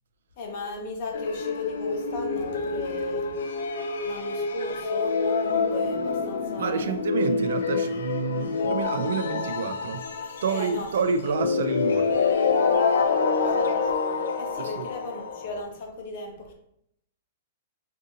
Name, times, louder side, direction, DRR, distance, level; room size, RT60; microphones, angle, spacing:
voice 1, 0.4-3.3 4.0-7.0 10.5-11.3 13.3-16.5, left 2 dB, 45° left, 1 dB, 0.8 m, -37 dB
sound 1, 1.1-15.6, left 4 dB, 85° left, 0.4 m, -27 dB
voice 2, 6.6-10.0 10.4-12.1 14.6-14.9, right 5 dB, 75° right, 9 dB, 0.3 m, -28 dB
2.6 x 2.5 x 3.7 m, 0.72 s
hypercardioid pair, 160°, 0 cm